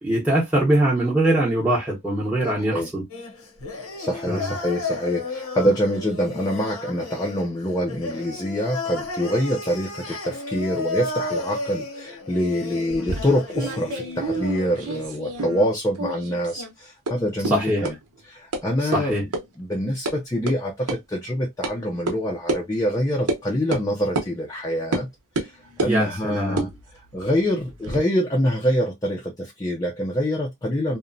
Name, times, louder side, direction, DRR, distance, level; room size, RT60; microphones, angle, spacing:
voice 1, 0.0-3.0 4.3-4.5 17.5-17.9 18.9-19.2 25.8-26.7, right 1 dB, 5° right, 0.7 m, -22 dB
voice 2, 2.5-2.9 4.0-17.9 18.3-19.1 19.6-25.1 25.4-31.0, equal, 15° left, 0.4 m, -25 dB
sound 1, 3.1-15.1, left 3 dB, 70° left, 0.8 m, -33 dB
sound 2, 12.9-15.7 16.0-16.7 17.1-17.2 17.4-17.5 17.8-17.9 18.5-18.6 18.9-19.0 19.3-19.4 19.8-20.1 20.5-20.6 20.9-21.0 21.6-21.7 22.1-22.2 22.5-22.6 23.3-23.4 23.7-23.9 24.2-24.3 24.9-25.1 25.4-26.0 26.5-28.0, right 2 dB, 85° right, 0.8 m, -29 dB
2.8 x 2.1 x 2.5 m
head